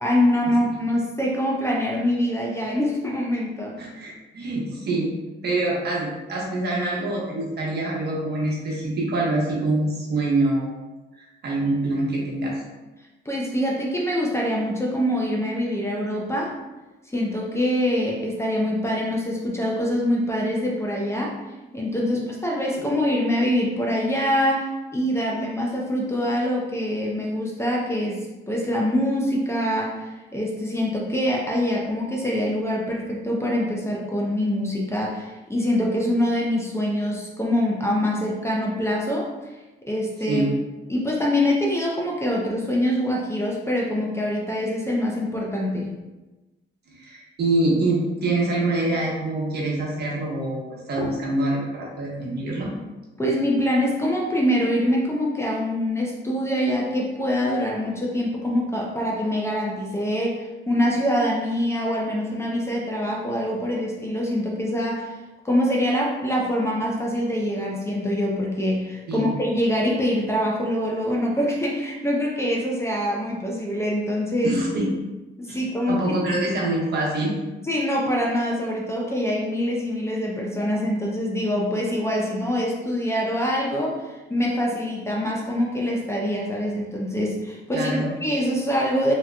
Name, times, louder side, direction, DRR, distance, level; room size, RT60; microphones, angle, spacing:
voice 1, 0.0-3.7 13.3-16.5 17.1-21.3 21.7-30.0 30.3-39.3 39.9-40.4 40.9-45.9 53.2-65.2 65.4-74.5 75.4-76.0 77.6-89.1, equal, 15° left, -3 dB, 0.6 m, -24 dB
voice 2, 3.8-5.1 5.4-10.7 11.2-12.6 22.8-22.9 40.3-40.5 46.9-52.7 69.1-69.3 74.4-74.9 75.5-77.4 87.7-88.1, right 2 dB, 55° right, -4 dB, 1.1 m, -25 dB
3.4 x 2.9 x 2.2 m, 1.1 s
cardioid pair, 90°, 20 cm